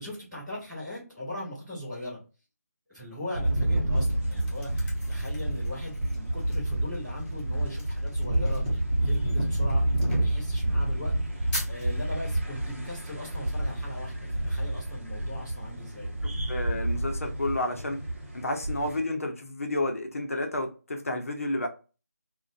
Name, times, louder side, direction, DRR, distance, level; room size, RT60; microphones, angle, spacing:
voice 1, 0.0-2.2 2.9-16.1, left 1 dB, 5° right, 0.3 m, -39 dB
sound 1, 3.3-19.0, right 1 dB, 45° right, 0.8 m, -29 dB
sound 2, 3.9-12.3, left 1 dB, 30° left, 1.2 m, -44 dB
voice 2, 16.2-18.0 18.3-21.7, left 1 dB, 55° left, 0.6 m, -31 dB
2.4 x 2.2 x 2.4 m
figure-of-eight pair, 160°, 9 cm